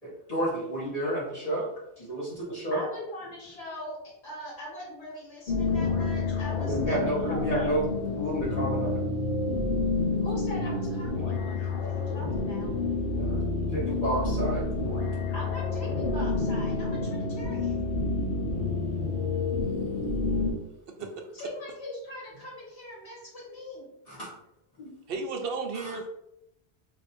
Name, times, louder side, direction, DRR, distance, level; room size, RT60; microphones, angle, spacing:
voice 1, 0.0-1.7 2.0-2.8 6.6-7.8 8.1-9.0 13.2-14.6 24.1-24.3 24.8-24.9 25.7-26.0, right 1 dB, 35° left, -9 dB, 1.6 m, -31 dB
voice 2, 2.7-7.7 10.2-12.7 15.3-17.8 21.3-23.9, left 1 dB, 70° left, -4 dB, 1.8 m, -41 dB
sound 1, 5.5-20.5, left 3 dB, 55° left, 0.9 m, -29 dB
voice 3, 25.1-26.1, right 4 dB, 60° right, 4 dB, 0.8 m, -33 dB
3.2 x 2.6 x 4.2 m, 0.80 s
omnidirectional pair, 1.1 m